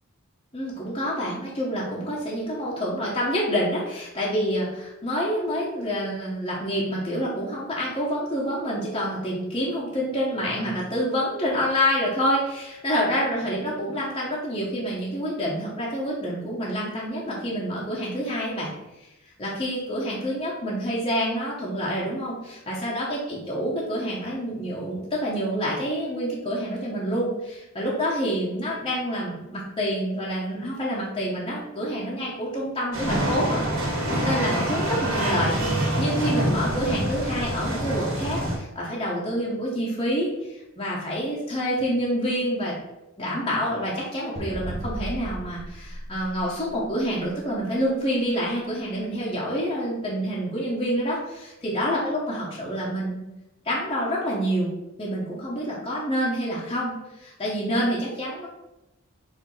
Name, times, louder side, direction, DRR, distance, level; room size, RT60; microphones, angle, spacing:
voice 1, 0.5-18.7 19.4-33.6 34.0-42.7 43.2-53.2 53.6-54.7 55.0-58.5, equal, 25° left, -6 dB, 1.2 m, -27 dB
sound 1, 32.9-38.6, right 1 dB, 65° right, 1.7 m, -26 dB
sound 2, 44.4-47.1, right 1 dB, 30° right, 1.0 m, -35 dB
4.7 x 3.7 x 5.5 m, 0.93 s
head